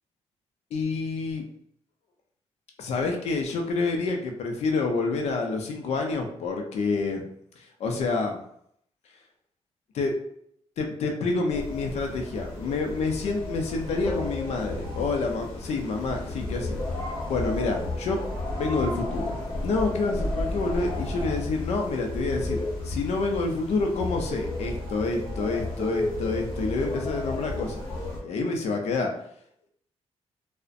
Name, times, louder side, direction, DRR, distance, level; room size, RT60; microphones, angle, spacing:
voice 1, 0.7-1.4 2.8-7.2 7.6-8.4 9.9-10.1 10.8-16.8 17.3-18.2 18.5-27.8 28.2-29.1, left 3 dB, 70° left, 3 dB, 0.5 m, -28 dB
sound 1, 11.5-28.2, left 2 dB, 40° left, 1.0 m, -33 dB
2.5 x 2.1 x 2.4 m, 0.69 s
wide cardioid pair, 165°, 11 cm